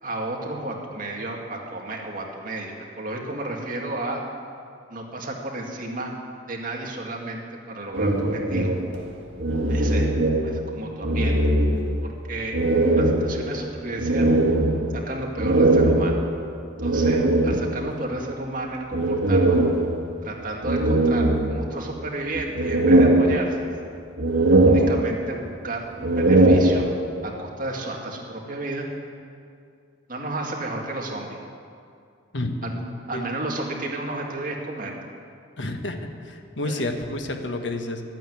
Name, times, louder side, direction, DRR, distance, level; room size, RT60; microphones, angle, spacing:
voice 1, 0.0-4.2 4.9-6.1 6.5-8.7 9.7-10.1 10.4-11.4 12.3-12.6 13.0-14.3 14.9-16.1 16.8-19.6 20.2-23.7 24.6-26.9 27.2-28.9 30.1-31.4 32.6-32.8 33.1-34.9 36.6-36.9, right 2 dB, 45° right, -1 dB, 2.2 m, -32 dB
sound 1, 7.9-10.7 11.0-12.1 12.5-18.0 18.9-20.2 20.6-21.9 22.3-23.8 24.2-25.5 25.9-27.3, right 2 dB, 90° right, 1.5 m, -20 dB
voice 2, 35.6-36.0 36.2-38.0, left 2 dB, 75° left, 5 dB, 1.3 m, -29 dB
13.0 x 9.1 x 9.5 m, 2.4 s
head